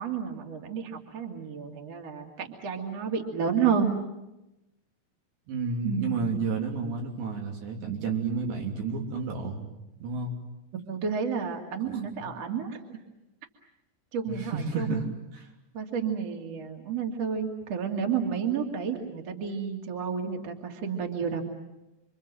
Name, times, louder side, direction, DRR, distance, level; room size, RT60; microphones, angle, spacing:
voice 1, 0.0-4.0 5.8-6.4 10.7-13.0 14.1-15.0 15.7-21.4, right 6 dB, 45° right, 3 dB, 3.2 m, -31 dB
voice 2, 5.5-9.7 10.0-10.3 12.2-12.3 14.3-15.0, right 4 dB, 80° right, 0 dB, 5.5 m, -31 dB
27.5 x 25.5 x 7.7 m, 0.94 s
omnidirectional pair, 4.8 m